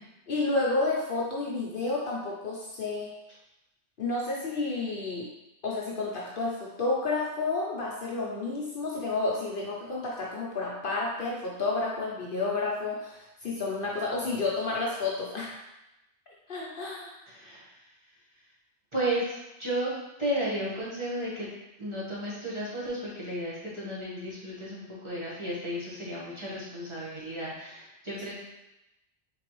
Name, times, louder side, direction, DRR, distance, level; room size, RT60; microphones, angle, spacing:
voice 1, 0.3-3.1 4.0-5.3 5.6-15.5 16.5-17.1 28.1-28.2, left 3 dB, 55° left, -4 dB, 0.8 m, -30 dB
voice 2, 17.3-17.7 18.9-19.9 20.2-21.5 21.8-28.4, right 1 dB, 25° right, -8 dB, 1.1 m, -33 dB
3.9 x 3.8 x 3.0 m, 0.93 s
omnidirectional pair, 1.2 m